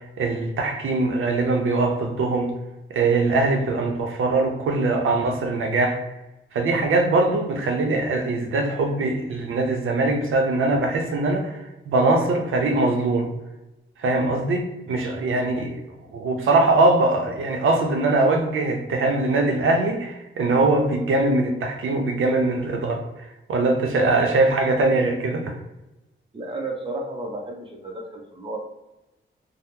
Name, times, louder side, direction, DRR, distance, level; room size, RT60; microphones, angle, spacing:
voice 1, 0.2-2.5 2.9-6.0 6.5-13.3 14.0-15.8 16.1-23.0 23.5-25.6, right 2 dB, 80° right, 2 dB, 0.5 m, -22 dB
voice 2, 26.3-28.6, right 2 dB, 25° right, 0 dB, 0.5 m, -32 dB
2.7 x 2.0 x 3.4 m, 0.98 s
wide cardioid pair, 125°, 21 cm